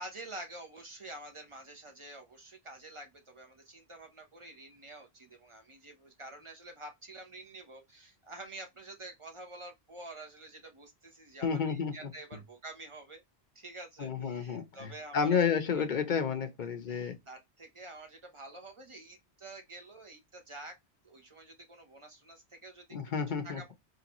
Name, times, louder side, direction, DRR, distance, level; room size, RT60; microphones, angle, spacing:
voice 1, 0.0-13.2 13.5-15.7 16.9-20.8 21.0-22.8 23.4-23.7, right 2 dB, 30° right, 1.0 m, -48 dB
voice 2, 11.4-12.1 14.0-17.2 22.9-23.7, left 6 dB, 50° left, 0.8 m, -31 dB
3.9 x 3.2 x 2.9 m
omnidirectional pair, 1.1 m